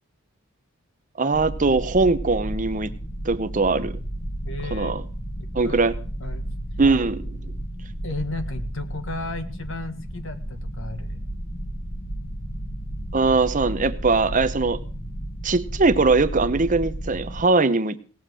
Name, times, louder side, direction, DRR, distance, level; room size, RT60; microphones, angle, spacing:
voice 1, 1.2-2.9 3.2-3.9 4.7-5.0 5.5-5.9 6.8-7.4 13.1-14.8 15.4-18.0, right 3 dB, 35° right, 12 dB, 0.7 m, -21 dB
sound 1, 1.3-17.4, right 1 dB, 30° left, 1.6 m, -33 dB
voice 2, 4.4-5.0 5.6-5.8 6.2-6.5 8.0-11.3, left 2 dB, 60° left, 9 dB, 1.5 m, -34 dB
18.0 x 7.2 x 6.1 m, 0.40 s
head